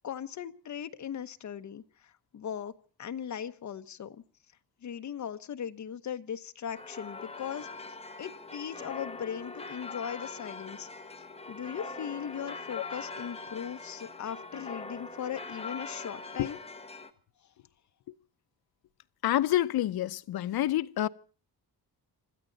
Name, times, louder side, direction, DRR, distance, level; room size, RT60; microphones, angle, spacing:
voice 1, 0.0-2.7 3.0-4.2 4.8-7.8 8.2-10.9 11.5-16.6, left 8 dB, 50° left, 1.1 m, -38 dB
sound 1, 6.7-17.1, left 3 dB, 15° left, 1.1 m, -42 dB
voice 2, 19.2-21.1, left 13 dB, 75° left, 0.7 m, -27 dB
26.5 x 13.5 x 4.0 m
wide cardioid pair, 175°, 38 cm